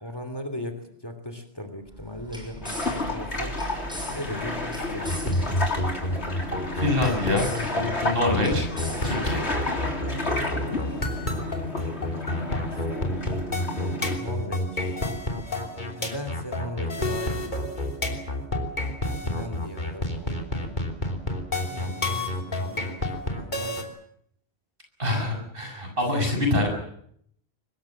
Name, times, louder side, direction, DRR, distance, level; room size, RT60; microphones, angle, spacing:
voice 1, 0.0-3.6 4.1-5.6 10.2-11.0 11.3-11.9 12.7-13.4 14.2-15.1 16.0-17.6 19.2-20.9 21.6-23.9, left 1 dB, 20° left, 8 dB, 3.0 m, -38 dB
sound 1, 1.9-10.0, equal, 5° right, 6.2 m, -39 dB
sound 2, 2.6-14.2, left 2 dB, 85° left, 4.1 m, -31 dB
sound 3, 5.1-23.8, left 1 dB, 45° left, 3.5 m, -29 dB
voice 2, 6.8-7.5 8.1-8.7 9.0-9.4 25.0-26.7, left 2 dB, 55° right, 3 dB, 7.1 m, -25 dB
24.5 x 21.0 x 7.4 m, 0.68 s
omnidirectional pair, 1.1 m